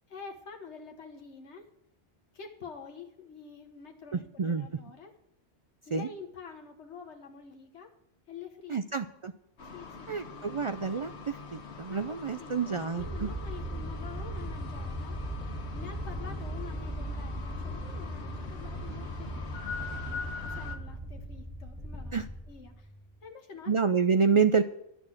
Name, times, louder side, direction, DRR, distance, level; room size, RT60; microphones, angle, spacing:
voice 1, 0.1-1.7 2.3-5.1 5.9-7.9 8.3-9.1 9.7-10.6 11.9-15.2 15.7-22.1 22.5-22.9 23.2-23.7, left 5 dB, 90° left, 3 dB, 1.5 m, -47 dB
voice 2, 4.1-4.7 5.9-6.1 8.7-9.3 10.1-13.3 22.1-22.2 23.7-24.6, right 5 dB, 55° right, 9 dB, 0.3 m, -28 dB
sound 1, 9.6-20.8, left 5 dB, 75° left, 1.6 m, -43 dB
sound 2, 13.0-23.1, right 1 dB, 5° right, 3.7 m, -38 dB
11.5 x 6.4 x 8.6 m, 0.78 s
omnidirectional pair, 1.1 m